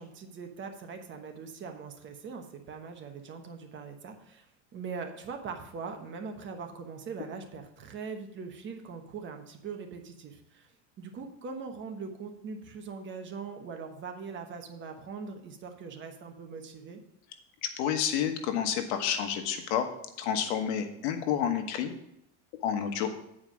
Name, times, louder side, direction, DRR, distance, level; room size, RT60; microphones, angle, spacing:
voice 1, 0.0-4.5 4.7-10.7 11.0-17.0, right 5 dB, 35° right, 5 dB, 1.2 m, -41 dB
voice 2, 17.6-19.9 20.2-21.9 22.6-23.1, left 9 dB, 70° left, 7 dB, 1.3 m, -29 dB
9.1 x 4.9 x 6.1 m, 0.81 s
supercardioid pair, 135°, 35 cm